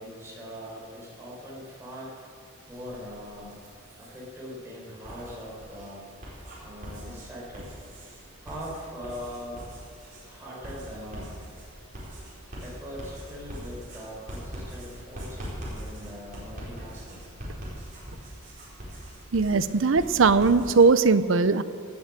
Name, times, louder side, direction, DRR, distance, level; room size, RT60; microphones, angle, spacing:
voice 1, 0.0-2.1 2.7-3.6 4.0-6.0 6.6-7.7 8.4-9.6 10.3-11.4 12.6-17.3, equal, 10° right, -6 dB, 4.6 m, -41 dB
Writing, 2.7-4.2 4.9-20.9, equal, 40° right, 4.6 m, -42 dB
voice 2, 19.3-21.6, right 4 dB, 65° right, 13 dB, 0.6 m, -20 dB
18.0 x 8.2 x 7.6 m, 2.3 s
head